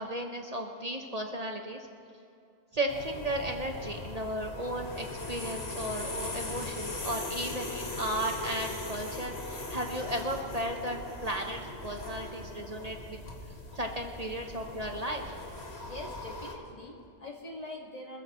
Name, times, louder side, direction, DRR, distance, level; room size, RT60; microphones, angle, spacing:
voice 1, 0.0-1.9 2.7-13.2 13.7-15.4, right 1 dB, 40° right, 2 dB, 1.0 m, -35 dB
sound 1, 2.9-16.5, left 2 dB, 80° left, 2.0 m, -40 dB
voice 2, 15.8-18.2, left 2 dB, 35° left, -2 dB, 2.2 m, -43 dB
25.5 x 14.0 x 3.1 m, 2.6 s
omnidirectional pair, 1.1 m